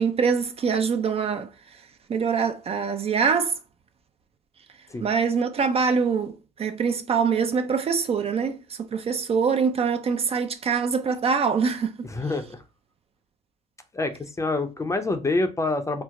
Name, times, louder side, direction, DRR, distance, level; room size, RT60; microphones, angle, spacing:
voice 1, 0.0-1.5 2.1-3.5 5.0-11.9, right 6 dB, 35° right, 0.5 m, -24 dB
voice 2, 12.0-12.6 13.9-16.0, left 2 dB, 20° left, 0.6 m, -26 dB
4.6 x 2.1 x 3.6 m
cardioid pair, 110°, 17 cm